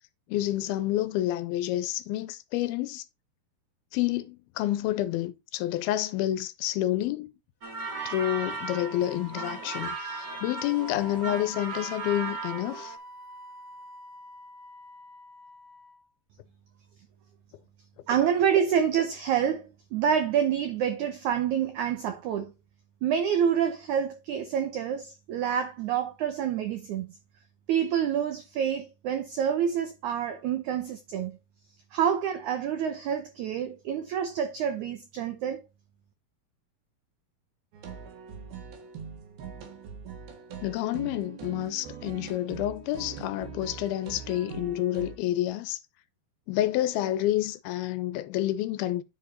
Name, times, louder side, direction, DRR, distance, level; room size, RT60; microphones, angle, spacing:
voice 1, 0.3-3.1 3.9-7.3 8.1-13.0 40.6-45.8 46.5-49.0, left 14 dB, 80° left, 2.4 m, -29 dB
sound 1, 7.6-13.0, right 4 dB, 35° right, 1.8 m, -36 dB
Wind instrument woodwind instrument, 7.8-16.1, left 1 dB, 45° left, 2.2 m, -46 dB
voice 2, 18.1-22.5 23.0-27.2 27.7-31.4 31.9-35.6, right 8 dB, 90° right, 1.7 m, -27 dB
sound 2, 37.7-45.2, right 6 dB, 70° right, 3.5 m, -42 dB
9.9 x 4.8 x 4.2 m
omnidirectional pair, 4.5 m